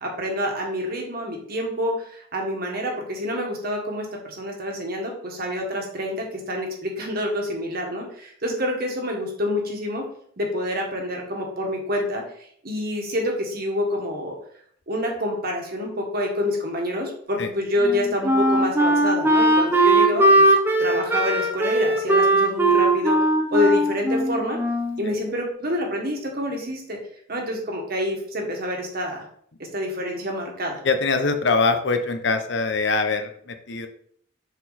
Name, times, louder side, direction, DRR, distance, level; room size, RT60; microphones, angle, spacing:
voice 1, 0.0-10.1 10.4-14.4 14.9-20.5 20.8-23.2 23.5-24.6 25.0-27.0 27.3-29.2 29.7-30.8, left 1 dB, 50° right, 1 dB, 1.6 m, -27 dB
Wind instrument woodwind instrument, 17.8-25.1, right 1 dB, 10° right, 0.7 m, -19 dB
voice 2, 30.8-33.9, left 4 dB, 60° left, 7 dB, 0.8 m, -23 dB
6.9 x 4.2 x 4.1 m, 0.63 s
head